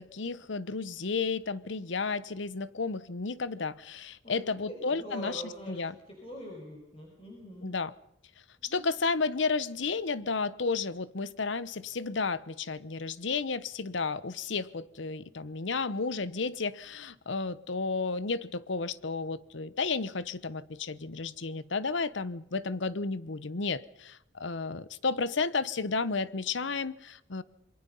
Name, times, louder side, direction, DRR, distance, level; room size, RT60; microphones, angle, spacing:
voice 1, 0.0-5.9 7.6-7.9 8.6-27.4, left 4 dB, 65° left, 0.9 m, -32 dB
voice 2, 4.2-7.7 8.6-8.8, equal, 30° left, 5.2 m, -44 dB
27.5 x 23.0 x 5.5 m
head